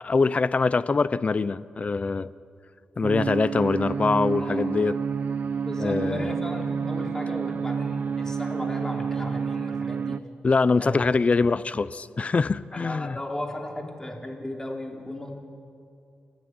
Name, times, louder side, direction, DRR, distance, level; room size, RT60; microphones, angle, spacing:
voice 1, 0.0-2.3 3.0-5.0 5.8-6.3 10.4-13.2, left 4 dB, 40° left, 17 dB, 0.6 m, -23 dB
sound 1, 3.0-10.2, right 6 dB, 60° right, 0.6 m, -29 dB
voice 2, 4.4-4.8 5.6-10.2 10.8-11.0 12.7-15.3, left 1 dB, 15° left, 1 dB, 3.9 m, -35 dB
29.0 x 13.0 x 9.7 m, 2.5 s
cardioid pair, 70°, 3 cm